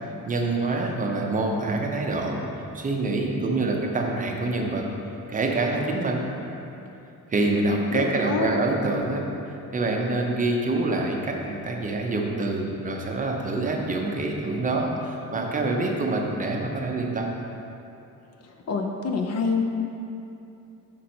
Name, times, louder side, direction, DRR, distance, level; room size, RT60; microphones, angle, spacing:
voice 1, 0.3-2.4 2.7-4.9 5.3-6.2 7.3-9.2 9.7-17.3, right 2 dB, 25° right, 0 dB, 0.5 m, -26 dB
voice 2, 7.9-8.5 18.7-19.6, left 4 dB, 50° left, 3 dB, 0.5 m, -26 dB
5.2 x 5.1 x 4.3 m, 2.8 s
cardioid pair, 165°, 35 cm